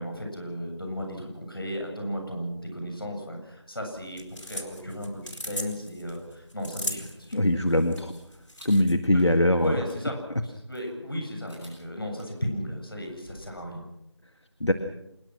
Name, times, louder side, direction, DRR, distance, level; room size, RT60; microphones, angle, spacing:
voice 1, 0.0-7.4 9.1-9.2 9.6-13.8, equal, 50° left, 3 dB, 8.0 m, -35 dB
sound 1, 4.0-9.0, equal, 90° left, 4.4 m, -38 dB
sound 2, 7.2-13.5, equal, 5° left, 5.3 m, -56 dB
voice 2, 7.3-8.1 8.7-9.7 14.6-14.7, left 1 dB, 65° left, 8 dB, 1.8 m, -22 dB
27.0 x 21.5 x 6.2 m, 0.83 s
figure-of-eight pair, 180°, 15 cm